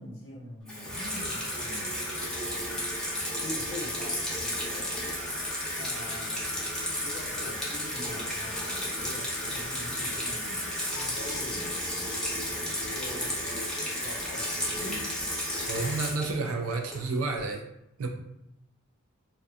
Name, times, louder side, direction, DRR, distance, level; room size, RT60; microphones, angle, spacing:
voice 1, 0.0-2.0 3.4-5.5 5.8-6.5 6.7-15.1, left 1 dB, 60° left, -1 dB, 0.7 m, -44 dB
Water tap faucet / Sink (filling or washing), 0.7-17.4, left 1 dB, 5° left, 0.5 m, -33 dB
voice 2, 15.7-17.6 18.0-18.1, right 3 dB, 80° right, 2 dB, 0.4 m, -30 dB
2.6 x 2.3 x 2.3 m, 0.85 s
head